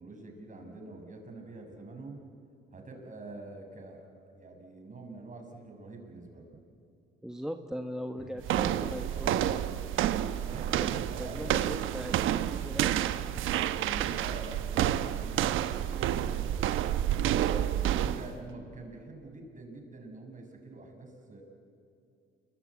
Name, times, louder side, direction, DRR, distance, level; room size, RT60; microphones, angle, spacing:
voice 1, 0.0-2.2 2.7-4.1 4.3-6.5 8.2-9.4 10.5-11.5 13.7-16.6 17.3-21.4, right 2 dB, 40° right, 3 dB, 5.9 m, -46 dB
voice 2, 7.2-9.4 10.5-13.3 17.3-17.7, equal, 5° right, 5 dB, 1.3 m, -40 dB
sound 1, 8.4-18.3, right 11 dB, 90° right, 1.1 m, -29 dB
28.5 x 23.0 x 8.5 m, 2.7 s
cardioid pair, 90°, 20 cm